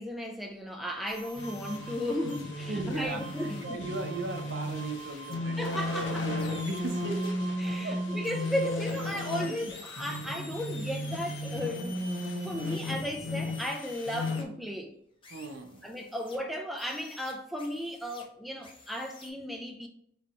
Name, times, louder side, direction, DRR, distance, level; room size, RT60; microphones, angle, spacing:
voice 1, 0.0-3.6 5.6-6.3 7.6-12.0 12.4-14.9 15.8-19.9, equal, ahead, 0.4 m, -35 dB
sound 1, 1.1-2.5 2.9-7.3 8.2-14.4 15.2-16.4 16.8-18.2 18.6-19.3, left 3 dB, 25° left, 0.7 m, -50 dB
sound 2, 1.1-8.8, right 4 dB, 80° right, 0.9 m, -47 dB
sound 3, 1.4-14.5, left 1 dB, 65° left, 0.7 m, -35 dB
voice 2, 2.7-5.8 6.2-7.4 7.6-8.2 8.6-8.7 9.6-9.7 15.3-15.8, right 3 dB, 60° right, 0.6 m, -38 dB
4.1 x 3.2 x 3.0 m
head